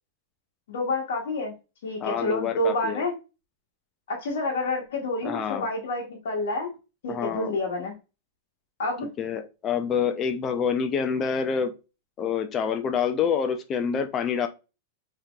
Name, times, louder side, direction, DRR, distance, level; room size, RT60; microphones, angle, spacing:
voice 1, 0.7-1.5 1.8-3.1 4.1-6.7 7.0-7.9 8.8-9.1, left 2 dB, 75° left, -1 dB, 1.0 m, -28 dB
voice 2, 2.0-3.0 5.2-5.7 7.1-7.6 9.2-11.7 12.2-14.5, left 7 dB, 25° left, 7 dB, 0.4 m, -27 dB
3.6 x 2.9 x 2.3 m, 0.29 s
supercardioid pair, 155°, 0 cm